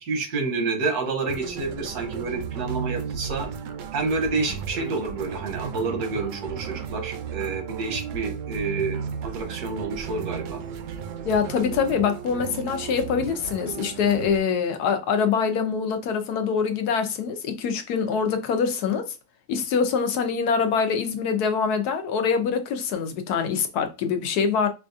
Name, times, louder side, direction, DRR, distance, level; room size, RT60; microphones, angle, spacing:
voice 1, 0.0-3.5 3.9-10.6, right 3 dB, 80° right, 1.5 m, -29 dB
sound 1, 1.3-14.4, right 7 dB, 65° right, 0.8 m, -34 dB
voice 2, 11.2-19.1 19.5-24.7, left 6 dB, 80° left, 1.2 m, -24 dB
5.0 x 2.4 x 2.6 m
omnidirectional pair, 1.7 m